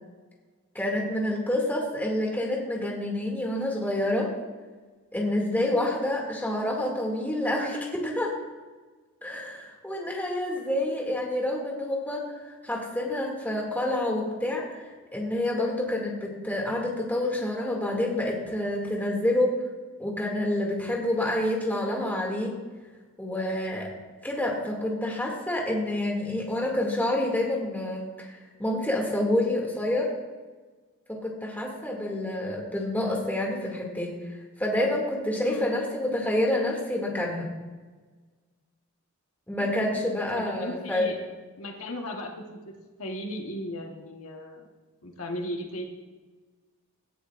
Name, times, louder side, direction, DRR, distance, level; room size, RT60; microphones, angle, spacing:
voice 1, 0.7-4.3 5.1-8.3 9.2-19.6 20.0-22.5 23.2-23.9 24.2-30.1 31.1-37.5 39.5-41.1, left 1 dB, 10° left, -2 dB, 2.3 m, -28 dB
voice 2, 35.4-35.9 39.6-41.2 41.6-42.7 43.0-44.7 45.0-45.9, equal, 70° left, 2 dB, 1.3 m, -36 dB
17.5 x 11.5 x 2.5 m, 1.3 s
head